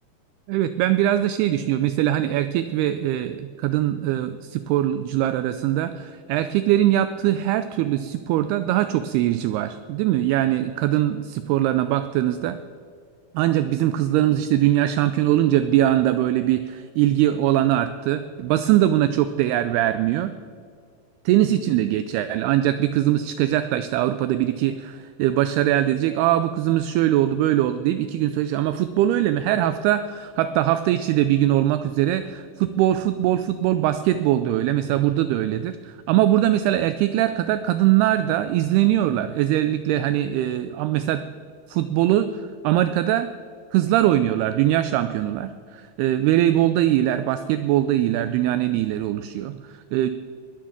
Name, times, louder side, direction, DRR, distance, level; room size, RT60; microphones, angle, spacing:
voice 1, 0.5-12.6 13.3-20.3 21.3-41.2 41.7-43.3 43.7-50.1, right 13 dB, 85° right, 11 dB, 2.3 m, -21 dB
20.5 x 7.5 x 7.2 m, 2.1 s
omnidirectional pair, 5.1 m